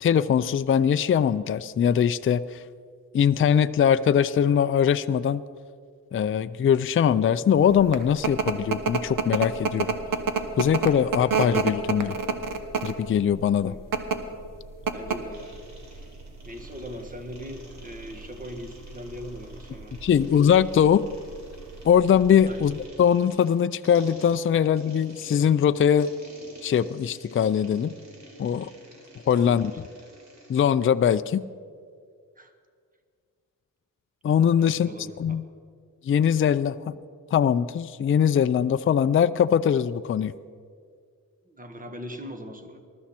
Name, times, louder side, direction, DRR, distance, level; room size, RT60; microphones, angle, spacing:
voice 1, 0.0-2.6 3.1-5.4 6.1-10.0 10.6-12.2 12.8-13.8 20.0-21.1 21.8-26.1 26.6-27.9 28.4-28.7 29.3-29.7 30.5-31.4 34.2-34.9 35.2-35.4 36.0-36.9 37.3-40.3, left 8 dB, 40° left, 12 dB, 0.4 m, -21 dB
sound 1, 7.6-22.9, right 5 dB, 80° right, 1.2 m, -30 dB
voice 2, 14.9-15.6 16.4-20.4 22.4-22.7 29.3-29.8 32.4-32.5 34.6-35.4 41.5-42.8, equal, 25° right, 6 dB, 1.6 m, -40 dB
sound 2, 15.3-30.7, right 1 dB, 55° right, 3.5 m, -50 dB
20.0 x 13.0 x 4.3 m, 2.1 s
wide cardioid pair, 95°, 33 cm